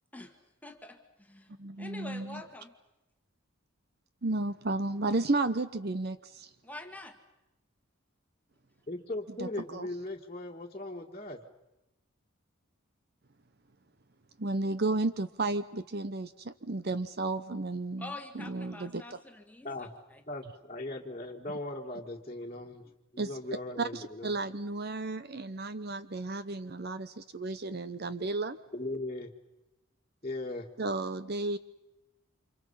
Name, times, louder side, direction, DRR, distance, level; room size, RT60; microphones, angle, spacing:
voice 1, 0.1-2.7 6.6-7.2 18.0-20.2, left 2 dB, 5° left, 4 dB, 1.8 m, -46 dB
voice 2, 1.6-2.4 4.2-6.5 9.4-9.9 14.4-19.2 23.2-23.4 23.8-28.6 30.8-31.6, right 2 dB, 50° right, 12 dB, 0.8 m, -33 dB
voice 3, 8.9-11.4 19.6-19.9 20.3-22.8 23.1-24.3 28.7-29.3 30.2-30.7, left 2 dB, 30° left, -4 dB, 2.0 m, -38 dB
30.0 x 26.5 x 5.7 m, 0.95 s
head